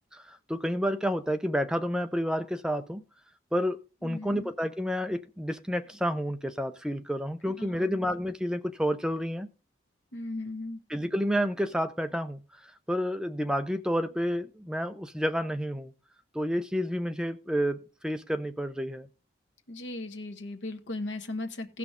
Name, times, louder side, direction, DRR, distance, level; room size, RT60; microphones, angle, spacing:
voice 1, 0.1-3.0 3.5-9.5 10.9-15.9 16.3-17.8 18.0-19.1, equal, 5° right, 0.5 m, -30 dB
voice 2, 4.0-4.5 7.6-8.0 10.1-10.8 19.7-21.8, left 2 dB, 80° left, 1.2 m, -37 dB
17.0 x 5.9 x 3.6 m
head